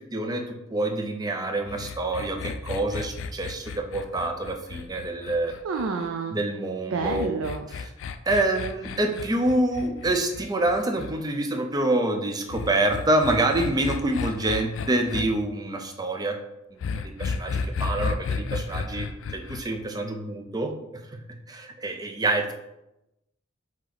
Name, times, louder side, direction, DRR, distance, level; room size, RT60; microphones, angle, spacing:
voice 1, 0.0-5.5 6.3-7.4 8.3-16.4 17.0-21.2 21.5-22.5, right 2 dB, 20° right, 4 dB, 0.5 m, -27 dB
sound 1, 1.7-6.1 7.0-11.1 12.5-15.2 16.8-19.6, left 5 dB, 65° left, 0.3 m, -33 dB
voice 2, 5.6-6.4 6.9-7.6, right 4 dB, 80° right, 4 dB, 0.4 m, -28 dB
4.6 x 2.9 x 3.9 m, 0.90 s
head